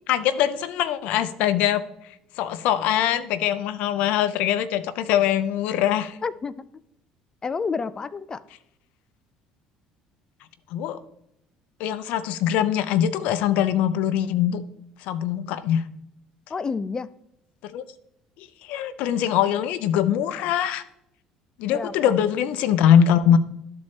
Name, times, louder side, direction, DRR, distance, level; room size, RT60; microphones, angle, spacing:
voice 1, 0.1-1.8 2.4-6.2 10.7-11.0 11.8-14.6 15.0-15.8 17.6-17.8 18.4-20.8 21.6-23.4, left 10 dB, 75° left, 14 dB, 0.6 m, -22 dB
voice 2, 6.2-6.5 7.4-8.4 16.5-17.1 21.7-22.2 23.3-23.4, left 5 dB, 30° left, 17 dB, 0.4 m, -30 dB
12.5 x 4.2 x 3.2 m, 0.78 s
supercardioid pair, 85°, 2 cm